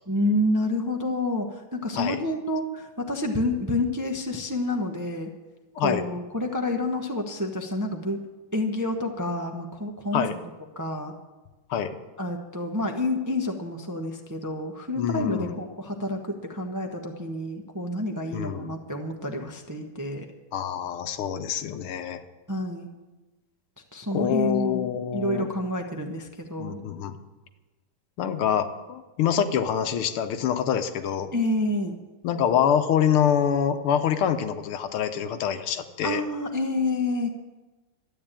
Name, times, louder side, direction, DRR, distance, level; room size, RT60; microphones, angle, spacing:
voice 1, 0.1-5.3 5.8-8.2 8.5-10.3 10.8-11.1 12.2-20.3 22.5-22.9 23.9-26.8 31.3-32.0 36.0-37.3, left 1 dB, 15° right, 3 dB, 0.6 m, -28 dB
voice 2, 15.0-15.6 18.3-18.8 20.5-22.2 24.1-25.5 26.6-27.2 28.2-31.3 32.2-36.2, left 8 dB, 90° left, 9 dB, 1.9 m, -25 dB
13.0 x 9.1 x 8.9 m, 1.2 s
omnidirectional pair, 2.4 m